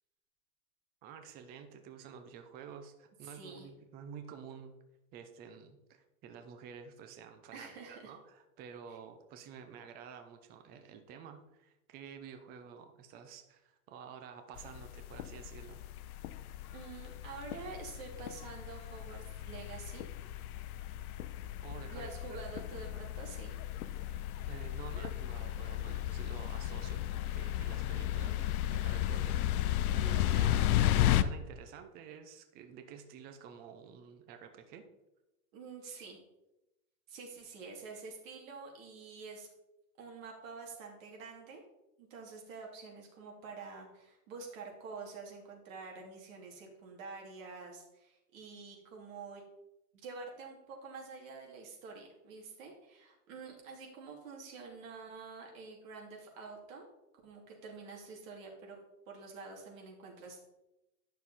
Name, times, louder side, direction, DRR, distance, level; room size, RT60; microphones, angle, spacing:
voice 1, 1.0-4.7 5.1-15.8 21.6-22.4 23.9-30.5 31.2-34.8, right 7 dB, 20° right, 7 dB, 0.6 m, -50 dB
voice 2, 3.2-3.7 7.5-8.1 8.9-9.0 16.7-20.0 21.9-23.5 30.1-31.0 35.5-36.2 37.1-39.5 40.0-41.6 42.0-49.4 49.9-56.8 57.2-58.8 59.1-60.4, right 4 dB, 55° right, 0 dB, 2.8 m, -48 dB
sound 1, 14.6-31.2, left 12 dB, 70° left, 0.7 m, -34 dB
9.7 x 6.3 x 4.1 m, 0.93 s
supercardioid pair, 150°, 46 cm